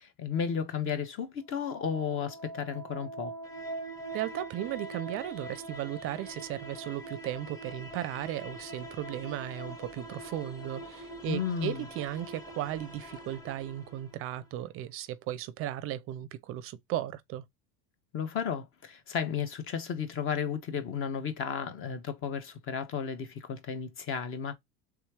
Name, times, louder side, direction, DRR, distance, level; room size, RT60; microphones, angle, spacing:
voice 1, 0.0-3.3 11.3-11.9 18.1-24.5, left 7 dB, 40° left, 1.1 m, -33 dB
sound 1, 1.5-14.5, right 1 dB, 10° left, 0.7 m, -43 dB
voice 2, 4.1-17.4, right 13 dB, 45° right, 0.5 m, -36 dB
3.5 x 3.1 x 4.7 m
cardioid pair, 155°, 31 cm